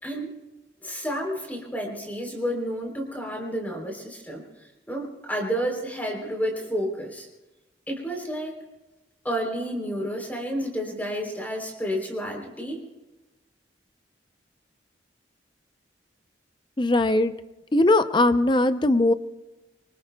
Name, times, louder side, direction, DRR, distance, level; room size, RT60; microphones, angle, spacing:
voice 1, 0.8-4.4 4.9-7.3 7.9-8.5 9.2-12.8, equal, 10° left, 1 dB, 3.4 m, -30 dB
voice 2, 16.8-17.3 17.7-19.1, left 2 dB, 25° left, 11 dB, 0.6 m, -20 dB
25.5 x 24.5 x 2.3 m, 1.0 s
head